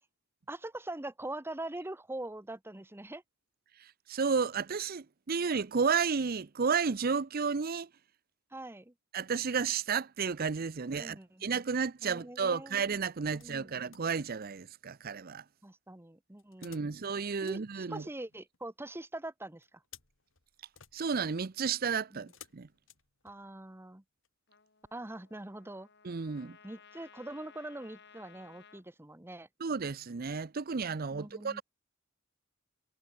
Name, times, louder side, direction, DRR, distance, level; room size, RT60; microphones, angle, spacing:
voice 1, 0.5-3.2 8.5-8.9 11.0-11.5 12.0-12.7 13.3-13.7 15.6-16.9 17.4-19.7 22.1-22.3 23.2-24.0 24.9-25.9 26.4-29.5 31.1-31.6, right 1 dB, 10° right, 1.0 m, -43 dB
voice 2, 3.8-7.9 9.1-15.4 16.6-18.0 20.9-22.7 26.0-26.6 29.6-31.6, right 5 dB, 50° right, 0.6 m, -32 dB
sound 1, 12.9-14.1 16.4-18.6 19.6-23.7 24.2-24.3, left 10 dB, 85° left, 3.2 m, -59 dB
Trumpet, 24.5-28.8, left 6 dB, 60° left, 4.4 m, -58 dB
head